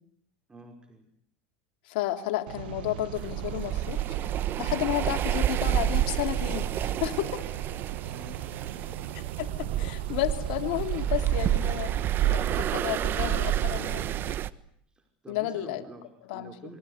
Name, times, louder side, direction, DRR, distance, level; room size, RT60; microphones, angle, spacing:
voice 1, 0.5-1.1 8.1-9.4 14.9-16.8, right 2 dB, 15° right, 4 dB, 5.6 m, -48 dB
voice 2, 1.9-4.0 4.6-7.5 9.4-14.1 15.3-15.8 16.3-16.5, left 15 dB, 70° left, 6 dB, 3.5 m, -32 dB
sound 1, 2.5-14.4, right 13 dB, 80° right, 1.2 m, -39 dB
sound 2, 3.1-14.5, right 11 dB, 40° right, 1.4 m, -29 dB
27.0 x 23.5 x 8.3 m, 0.70 s
hypercardioid pair, 100°, 5 cm